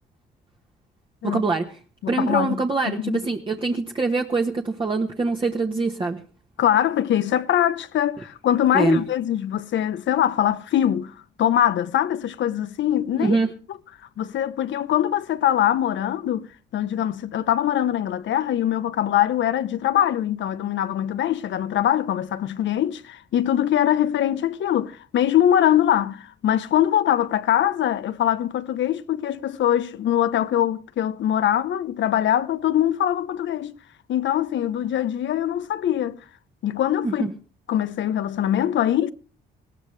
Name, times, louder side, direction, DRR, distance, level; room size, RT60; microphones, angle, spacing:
voice 1, 1.2-1.7 2.1-6.2 8.7-9.0 13.2-13.5 37.0-37.3, right 3 dB, 25° right, 1.3 m, -24 dB
voice 2, 2.0-2.6 3.0-3.2 6.6-13.4 14.2-16.5 16.7-33.8 34.1-36.2 36.6-37.3 37.7-39.1, left 11 dB, 70° left, 0.9 m, -22 dB
19.5 x 16.5 x 3.3 m
cardioid pair, 90°, 20 cm